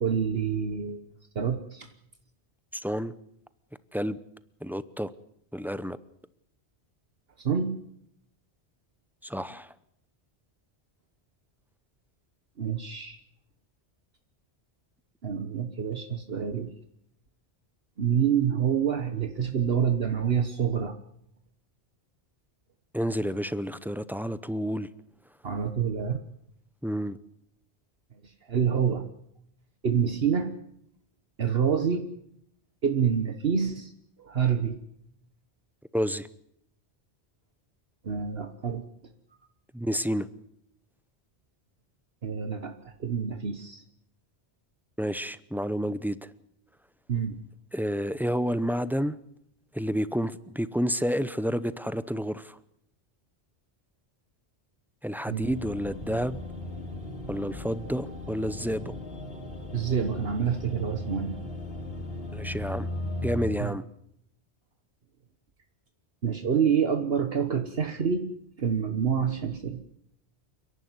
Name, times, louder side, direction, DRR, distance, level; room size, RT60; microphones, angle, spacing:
voice 1, 0.0-1.0 1.3-1.9 7.4-7.7 12.6-13.2 15.2-16.7 18.0-20.9 25.4-26.2 28.5-29.1 29.8-30.5 31.4-32.1 32.8-33.9 34.2-34.8 38.0-38.8 42.2-42.7 43.0-43.8 47.1-47.4 55.3-55.5 59.7-61.4 63.6-63.7 66.2-68.3 68.6-69.8, right 7 dB, 65° right, 7 dB, 1.4 m, -27 dB
voice 2, 2.7-3.1 3.9-4.2 4.6-5.1 5.5-6.0 9.2-9.7 22.9-24.9 26.8-27.2 35.9-36.3 39.7-40.3 45.0-46.3 47.7-49.2 49.7-52.6 55.0-56.4 57.3-58.9 62.3-62.9 63.2-63.8, equal, ahead, 15 dB, 0.5 m, -30 dB
sound 1, 55.4-63.5, left 1 dB, 65° left, 3.3 m, -37 dB
29.0 x 11.0 x 9.6 m, 0.76 s
omnidirectional pair, 1.1 m